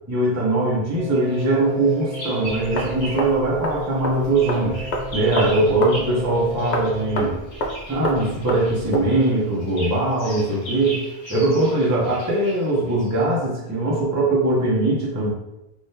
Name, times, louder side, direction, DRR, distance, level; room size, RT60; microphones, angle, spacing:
voice 1, 0.1-4.8 5.1-7.4 7.9-11.0 11.3-15.3, right 2 dB, 20° right, -5 dB, 0.6 m, -21 dB
sound 1, 1.0-7.2, left 1 dB, 85° right, 1.1 m, -34 dB
Bird vocalization bird call bird song, 1.1-3.4 3.7-13.2, right 1 dB, 70° left, 1.6 m, -38 dB
sound 2, 2.5-9.1, equal, 50° left, 0.6 m, -30 dB
3.4 x 2.4 x 2.7 m, 0.94 s
omnidirectional pair, 1.2 m